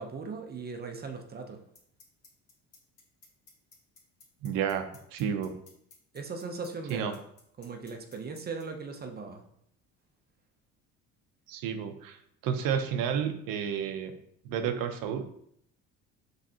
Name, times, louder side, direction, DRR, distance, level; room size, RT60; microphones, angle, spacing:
voice 1, 0.0-1.6 6.1-7.2 7.6-9.4, right 4 dB, 30° right, 5 dB, 0.6 m, -38 dB
sound 1, 1.8-8.6, left 4 dB, 45° left, 1.6 m, -55 dB
voice 2, 4.4-5.5 6.9-7.1 11.5-12.2 12.4-14.1 14.4-15.2, right 8 dB, 70° right, 8 dB, 0.7 m, -31 dB
5.2 x 3.2 x 2.8 m, 0.70 s
cardioid pair, 100°, 34 cm